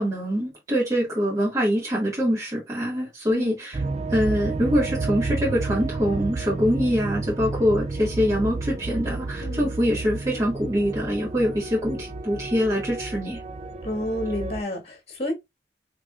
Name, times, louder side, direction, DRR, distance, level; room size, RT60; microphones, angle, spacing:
voice 1, 0.0-3.8 4.1-13.4, equal, 20° right, 1.9 m, -24 dB
sound 1, 3.7-14.6, right 3 dB, 40° right, 0.4 m, -31 dB
voice 2, 9.4-9.7 13.8-15.3, left 1 dB, 35° left, 1.5 m, -30 dB
5.7 x 3.2 x 2.4 m
head